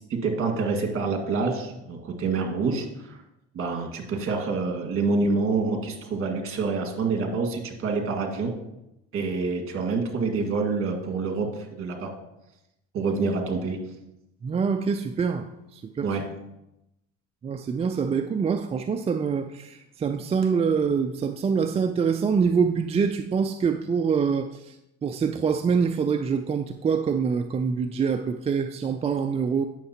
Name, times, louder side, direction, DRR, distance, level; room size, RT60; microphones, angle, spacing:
voice 1, 0.0-3.2 3.5-8.5 9.1-12.1 12.9-13.8 16.0-16.2, right 4 dB, 45° right, 2 dB, 1.8 m, -27 dB
voice 2, 14.4-16.1 17.4-24.8 25.0-29.7, right 6 dB, 20° right, 7 dB, 0.3 m, -25 dB
9.2 x 6.5 x 2.8 m, 0.88 s
supercardioid pair, 95°, 30 cm